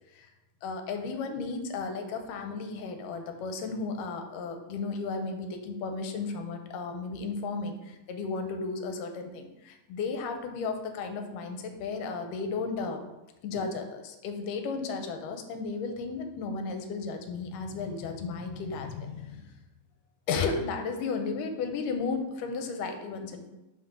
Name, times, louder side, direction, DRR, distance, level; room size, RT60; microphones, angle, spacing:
voice 1, 0.6-13.0 13.4-19.5 20.3-23.5, left 4 dB, 90° left, 5 dB, 2.3 m, -34 dB
5.7 x 3.7 x 5.8 m, 1.0 s
omnidirectional pair, 3.8 m